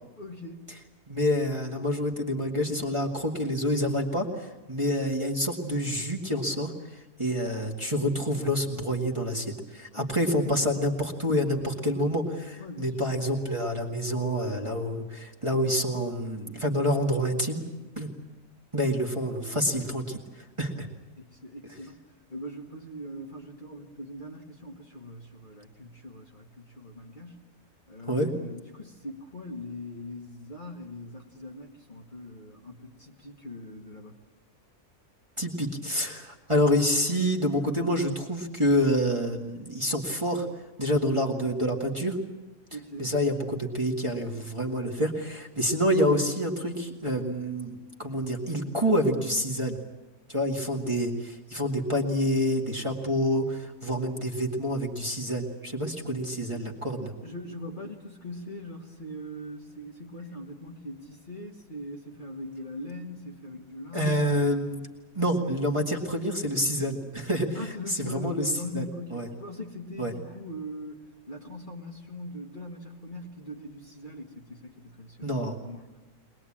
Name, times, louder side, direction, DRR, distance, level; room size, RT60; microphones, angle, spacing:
voice 1, 0.2-0.7 9.9-10.7 12.6-13.1 21.2-22.0 22.3-27.4 27.9-34.2 42.7-43.1 57.2-64.7 67.5-71.0 71.3-75.9, left 1 dB, 30° left, 0 dB, 2.2 m, -41 dB
voice 2, 1.1-17.6 18.0-18.1 18.7-20.9 28.0-28.3 35.4-40.5 40.8-42.2 43.0-49.8 50.3-57.1 63.9-64.8 65.2-67.6 67.9-68.8 69.1-69.3 70.0-70.1 75.2-75.6, equal, 20° right, -1 dB, 2.1 m, -27 dB
23.0 x 20.5 x 8.8 m, 1.1 s
omnidirectional pair, 1.6 m